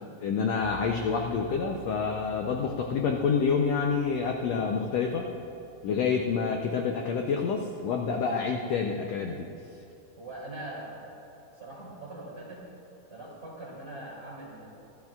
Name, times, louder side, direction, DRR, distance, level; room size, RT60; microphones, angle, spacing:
voice 1, 0.2-5.3 5.8-9.5, left 5 dB, 80° left, 2 dB, 1.5 m, -28 dB
sound 1, 0.6-9.5, right 7 dB, 85° right, 2.8 m, -52 dB
voice 2, 10.2-11.1 11.5-12.7 13.1-14.7, right 2 dB, 30° right, -5 dB, 3.0 m, -42 dB
24.0 x 15.0 x 2.4 m, 2.7 s
omnidirectional pair, 3.9 m